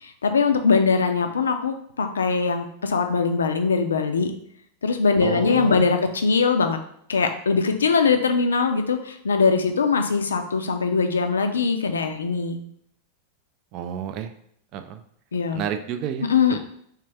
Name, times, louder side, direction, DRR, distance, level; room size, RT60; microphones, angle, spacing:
voice 1, 0.0-4.3 4.8-6.8 7.1-12.6 15.3-15.6 16.2-16.6, left 5 dB, 70° left, 7 dB, 0.4 m, -21 dB
voice 2, 5.2-6.0 13.7-14.3 14.7-15.0 15.5-16.6, right 9 dB, 40° right, 8 dB, 0.4 m, -31 dB
3.2 x 3.2 x 3.3 m, 0.67 s
figure-of-eight pair, 90°, 0 cm